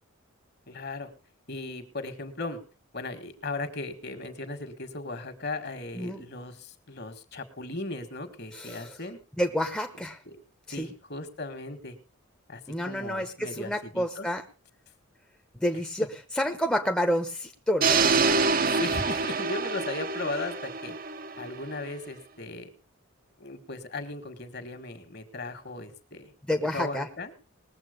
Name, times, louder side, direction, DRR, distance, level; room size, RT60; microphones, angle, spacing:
voice 1, 0.7-1.1 1.5-2.6 2.9-9.2 10.3-10.4 10.7-12.0 12.5-14.3 18.8-21.0 21.4-22.7 23.4-26.3 26.7-27.3, left 2 dB, 50° left, 8 dB, 1.7 m, -37 dB
voice 2, 8.5-8.9 9.4-10.2 10.7-10.9 12.7-14.4 15.6-18.1 26.5-27.1, equal, 5° left, 3 dB, 0.9 m, -29 dB
sound 1, 17.8-21.8, right 4 dB, 40° right, 0.7 m, -26 dB
20.0 x 7.6 x 5.2 m, 0.36 s
head